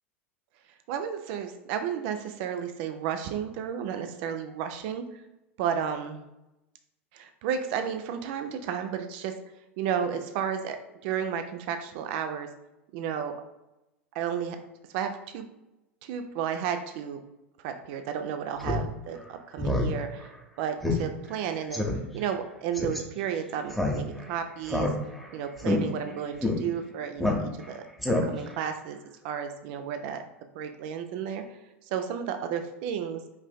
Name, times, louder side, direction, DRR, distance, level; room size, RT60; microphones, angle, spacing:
voice 1, 0.9-5.2 5.6-6.2 7.1-9.3 9.8-12.5 12.9-13.4 14.1-14.6 14.9-15.5 16.0-17.2 17.6-20.3 20.6-21.9 22.1-24.9 25.3-27.8 28.3-29.0 29.2-30.2 30.5-33.2, right 8 dB, 55° right, 7 dB, 0.4 m, -32 dB
Speech synthesizer, 18.6-18.8 19.2-19.3 19.6-19.9 20.2-20.3 20.8-21.0 21.3-21.4 21.7-22.0 22.7-23.0 23.7-24.3 24.7-25.3 25.6-25.8 26.4-26.5 27.2-27.7 28.0-28.5, left 2 dB, ahead, 0.7 m, -27 dB
5.3 x 2.5 x 2.2 m, 0.94 s
hypercardioid pair, 90°, 7 cm